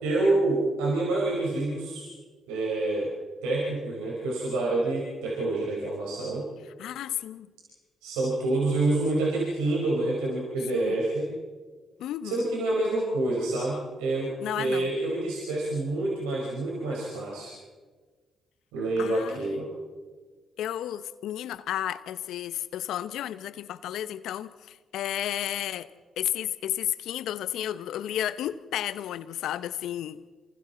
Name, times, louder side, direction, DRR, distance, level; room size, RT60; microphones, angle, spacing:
voice 1, 0.0-2.1 2.5-3.1 3.4-6.5 8.0-11.3 12.2-17.5 18.7-19.7, right 2 dB, 80° right, 4.9 m, -27 dB
voice 2, 6.8-7.5 10.7-10.9 12.0-12.5 14.4-14.9 19.0-19.7 20.6-25.9 26.2-30.2, left 11 dB, 70° left, 0.8 m, -32 dB
27.5 x 25.5 x 4.3 m
hypercardioid pair, 45°, 0 cm